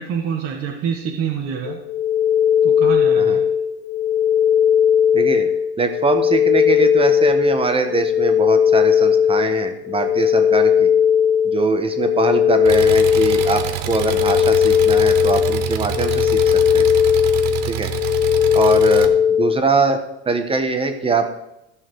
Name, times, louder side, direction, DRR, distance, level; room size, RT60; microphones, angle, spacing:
voice 1, 0.0-1.8 2.6-3.4, right 7 dB, 45° right, 2 dB, 1.4 m, -26 dB
sound 1, 1.7-19.6, left 8 dB, 65° left, 1.1 m, -17 dB
voice 2, 5.1-10.9 11.4-16.9 17.6-17.9 18.5-20.0 20.2-21.3, right 3 dB, 20° right, 7 dB, 1.3 m, -22 dB
Engine, 12.7-19.1, right 12 dB, 60° right, 1.1 m, -27 dB
14.5 x 5.7 x 4.8 m, 0.88 s
supercardioid pair, 110°, 31 cm